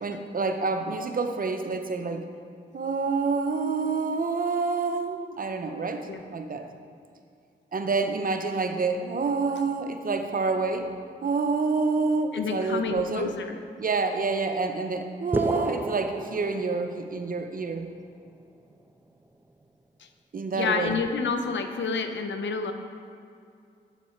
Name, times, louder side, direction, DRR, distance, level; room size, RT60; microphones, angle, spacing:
voice 1, 0.0-2.3 2.7-6.7 7.7-10.9 11.2-13.3 13.8-17.9 20.3-21.0, right 4 dB, 45° right, 6 dB, 0.8 m, -28 dB
voice 2, 12.3-13.6 20.5-22.7, left 5 dB, 70° left, 7 dB, 0.7 m, -29 dB
sound 1, 15.3-17.3, right 2 dB, 10° right, 0.5 m, -31 dB
7.2 x 6.6 x 4.5 m, 2.4 s
supercardioid pair, 45°, 20 cm